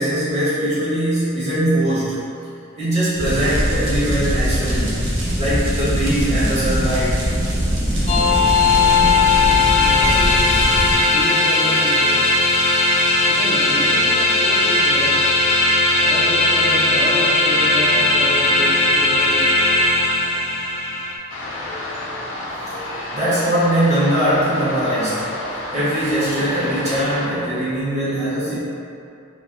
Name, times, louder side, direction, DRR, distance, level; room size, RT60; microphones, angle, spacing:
voice 1, 0.0-2.2 2.8-5.1 5.3-7.2 23.1-28.6, right 1 dB, 35° right, -12 dB, 1.4 m, -21 dB
sound 1, 3.2-10.9, equal, 75° right, 1.0 m, -21 dB
sound 2, 8.1-21.2, left 2 dB, 35° left, 0.4 m, -17 dB
voice 2, 9.4-10.5 11.1-12.3 13.2-15.2 16.0-19.6, equal, 15° right, -13 dB, 0.6 m, -30 dB
sound 3, 21.3-27.3, left 1 dB, 80° left, 0.6 m, -30 dB
4.0 x 2.2 x 3.5 m, 2.6 s
head